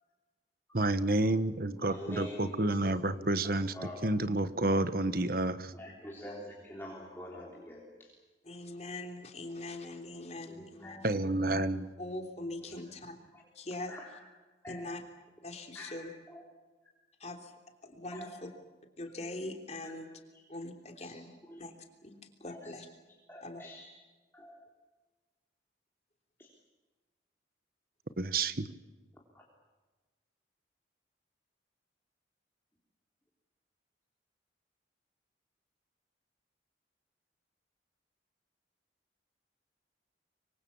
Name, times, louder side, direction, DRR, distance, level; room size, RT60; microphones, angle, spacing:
voice 1, 0.7-3.7 4.0-5.7 11.0-11.9 28.2-28.7, right 2 dB, 50° right, 12 dB, 1.2 m, -29 dB
voice 2, 1.7-4.1 5.7-8.1 10.5-11.1 12.6-12.8 13.3-13.4 13.9-14.2 14.6-15.0 15.7-16.4 18.1-18.5 19.2-19.4 19.8-19.9 21.0-21.6 22.5-22.8 23.3-24.0 24.3-24.6 26.4-26.5 29.3-29.5, left 1 dB, 10° left, -2 dB, 3.6 m, -47 dB
voice 3, 8.4-11.1 12.0-13.1 13.5-13.9 14.7-15.0 15.4-16.1 17.2-17.5 17.8-18.5 19.0-20.1 20.5-21.7 22.0-22.9 23.4-23.6, left 2 dB, 35° left, 4 dB, 3.3 m, -42 dB
25.0 x 24.5 x 7.2 m, 1.3 s
head